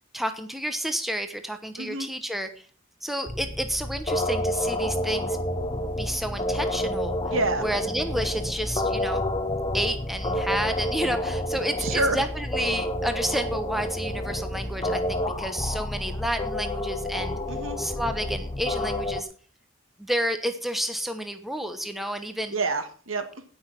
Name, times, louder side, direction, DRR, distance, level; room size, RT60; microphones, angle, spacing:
voice 1, 0.1-2.5 3.0-5.4 6.0-7.2 7.6-9.2 9.7-17.3 17.8-19.3 20.0-22.6, equal, ahead, 7 dB, 1.1 m, -30 dB
voice 2, 1.8-2.1 7.3-7.7 11.8-12.2 17.5-17.8 22.5-23.4, right 2 dB, 80° right, 9 dB, 1.8 m, -28 dB
sound 1, 3.3-19.2, left 1 dB, 20° left, 0.8 m, -29 dB
17.0 x 6.2 x 5.9 m, 0.43 s
head